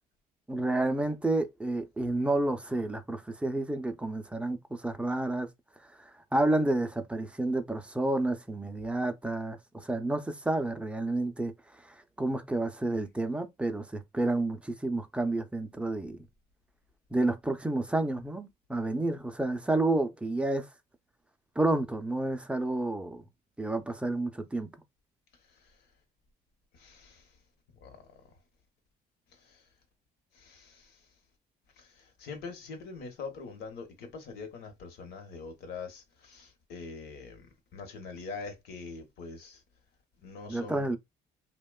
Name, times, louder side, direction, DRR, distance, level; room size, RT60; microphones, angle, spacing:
voice 1, 0.5-5.5 6.0-11.5 11.9-16.3 17.1-20.7 21.6-23.2 23.6-24.7 40.5-41.0, right 2 dB, 5° right, 0.4 m, -30 dB
voice 2, 26.8-27.2 27.8-28.0 30.4-30.8 32.2-37.4 37.7-39.6 40.2-40.9, left 4 dB, 75° left, 0.9 m, -43 dB
2.9 x 2.1 x 2.2 m
cardioid pair, 110°, 17 cm